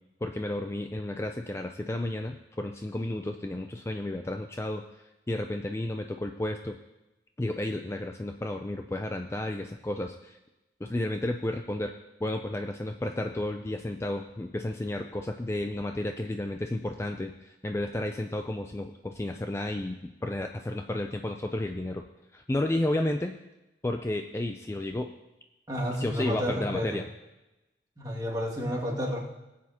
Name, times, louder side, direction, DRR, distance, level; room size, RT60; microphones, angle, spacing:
voice 1, 0.2-6.8 7.4-10.4 10.8-11.9 12.2-22.0 22.3-23.4 23.8-25.1 26.0-27.1, left 1 dB, 15° left, 5 dB, 0.4 m, -32 dB
voice 2, 25.7-27.0 28.0-29.2, equal, 20° right, -4 dB, 2.2 m, -31 dB
19.0 x 8.6 x 2.9 m, 1.0 s
head